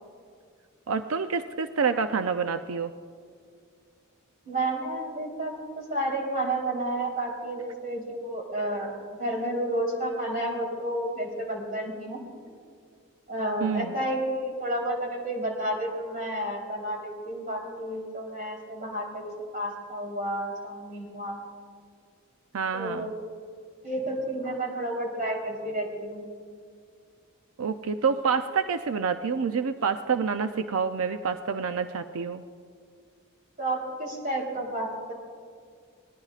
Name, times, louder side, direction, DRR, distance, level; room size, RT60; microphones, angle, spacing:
voice 1, 0.9-2.9 13.6-13.9 22.5-23.1 27.6-32.4, right 5 dB, 90° right, 8 dB, 0.5 m, -27 dB
voice 2, 4.5-12.2 13.3-21.4 22.7-23.1 23.8-26.3 33.6-35.1, right 1 dB, 40° right, -1 dB, 3.7 m, -31 dB
25.0 x 18.5 x 2.4 m, 2.2 s
head